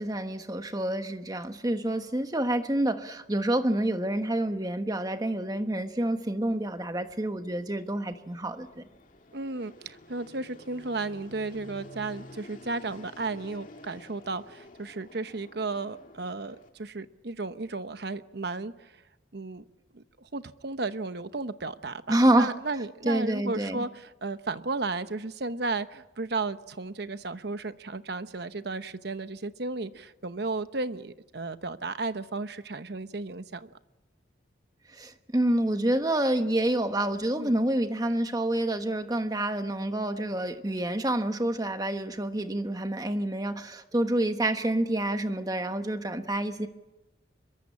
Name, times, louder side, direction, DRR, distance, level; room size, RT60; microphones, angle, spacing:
voice 1, 0.0-8.8 22.1-22.5 23.0-23.8 34.9-46.7, right 1 dB, 20° right, 1.2 m, -28 dB
Fixed-wing aircraft airplane, 6.5-16.7, left 1 dB, 45° left, 2.2 m, -51 dB
voice 2, 9.3-18.9 19.3-19.6 19.9-33.7 37.4-37.5, right 3 dB, 60° right, 1.0 m, -34 dB
25.0 x 22.5 x 8.5 m
head